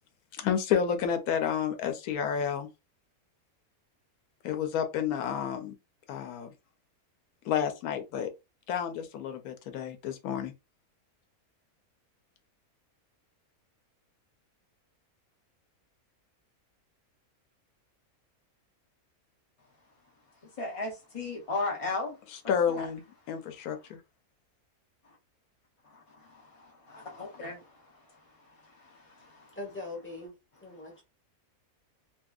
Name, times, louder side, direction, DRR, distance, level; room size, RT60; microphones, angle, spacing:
voice 1, 0.4-2.7 4.4-5.7 6.1-6.5 7.4-8.3 8.7-10.5 22.5-23.0 23.3-24.0, left 8 dB, 80° left, 1.0 m, -30 dB
voice 2, 20.6-22.2 22.7-22.9 25.9-28.0 28.6-29.6, left 3 dB, 60° left, 0.3 m, -37 dB
voice 3, 29.6-30.3 30.6-31.0, left 2 dB, 10° left, 0.7 m, -41 dB
2.8 x 2.6 x 2.3 m
omnidirectional pair, 1.6 m